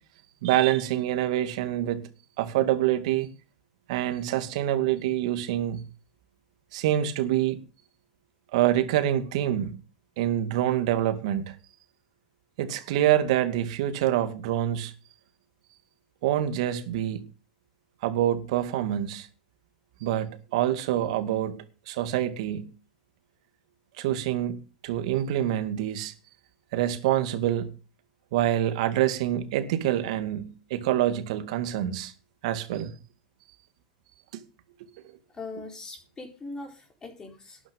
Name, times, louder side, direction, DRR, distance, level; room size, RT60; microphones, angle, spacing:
voice 1, 0.4-2.1 2.4-3.3 3.9-5.8 6.7-7.6 8.5-9.8 10.2-11.6 12.6-14.9 16.2-17.3 18.0-19.3 20.0-22.7 24.0-26.1 26.7-27.7 28.3-32.1 32.4-32.9 34.3-34.4 34.8-34.9, right 12 dB, 70° right, 2.3 m, -26 dB
voice 2, 35.3-37.6, left 3 dB, 20° left, 4.4 m, -41 dB
12.5 x 10.0 x 5.4 m
supercardioid pair, 125°, 4 cm